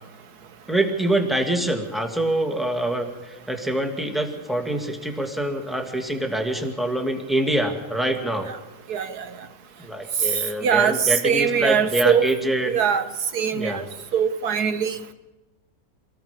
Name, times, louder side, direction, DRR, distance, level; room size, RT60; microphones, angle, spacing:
voice 1, 0.7-8.5 9.8-12.7 13.5-13.8, right 1 dB, ahead, 3 dB, 2.3 m, -25 dB
voice 2, 8.9-9.3 10.6-12.2 12.7-13.0 13.3-13.9 14.1-15.1, right 7 dB, 85° right, 9 dB, 1.8 m, -22 dB
27.0 x 19.0 x 5.2 m, 1.0 s
omnidirectional pair, 1.6 m